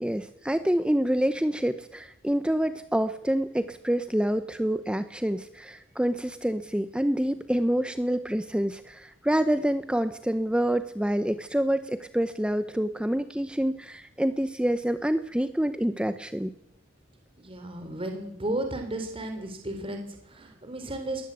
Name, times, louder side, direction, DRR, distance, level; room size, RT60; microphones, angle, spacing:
voice 1, 0.0-16.5, equal, 5° right, 11 dB, 0.8 m, -27 dB
voice 2, 17.4-21.3, right 1 dB, 30° right, 5 dB, 3.4 m, -34 dB
21.5 x 18.5 x 8.2 m, 0.79 s
head